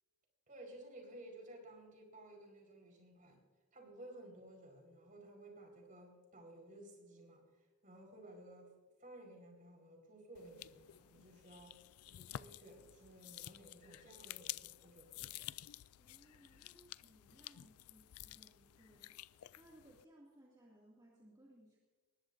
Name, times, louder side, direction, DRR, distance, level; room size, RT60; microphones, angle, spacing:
voice 1, 0.5-3.4 3.7-7.4 7.8-8.7 9.0-11.8 12.1-15.4, right 1 dB, 40° right, 2 dB, 4.6 m, -56 dB
sound 1, 10.3-20.0, left 13 dB, 85° left, 0.4 m, -51 dB
voice 2, 16.0-21.8, right 1 dB, 20° right, -4 dB, 2.3 m, -64 dB
20.5 x 19.5 x 2.6 m, 1.3 s
head